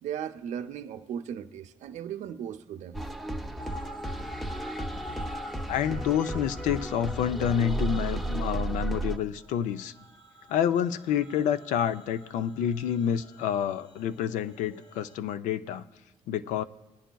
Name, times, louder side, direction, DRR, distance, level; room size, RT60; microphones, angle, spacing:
voice 1, 0.0-3.0, right 9 dB, 75° right, 8 dB, 0.6 m, -37 dB
sound 1, 2.9-9.2, right 2 dB, ahead, 0.6 m, -33 dB
sound 2, 3.6-15.2, equal, 35° left, 0.8 m, -47 dB
voice 2, 5.7-9.9 10.5-15.8 16.3-16.6, left 9 dB, 90° left, 12 dB, 0.4 m, -28 dB
20.0 x 10.0 x 2.3 m, 0.96 s
cardioid pair, 100°, 12 cm